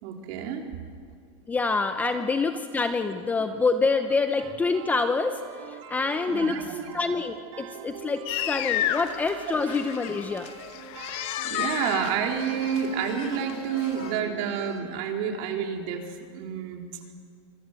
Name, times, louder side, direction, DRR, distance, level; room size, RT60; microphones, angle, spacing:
voice 1, 0.0-0.7 2.0-2.1 6.3-6.9 11.4-16.8, right 7 dB, 45° right, 2 dB, 3.4 m, -29 dB
voice 2, 1.5-5.4 5.7-6.7 6.9-10.5, left 4 dB, 10° left, 8 dB, 0.7 m, -26 dB
sound 1, 4.4-14.8, right 9 dB, 75° right, 3.0 m, -43 dB
sound 2, 8.3-14.1, left 12 dB, 35° left, 1.2 m, -32 dB
26.0 x 22.5 x 7.7 m, 2.1 s
supercardioid pair, 160°, 16 cm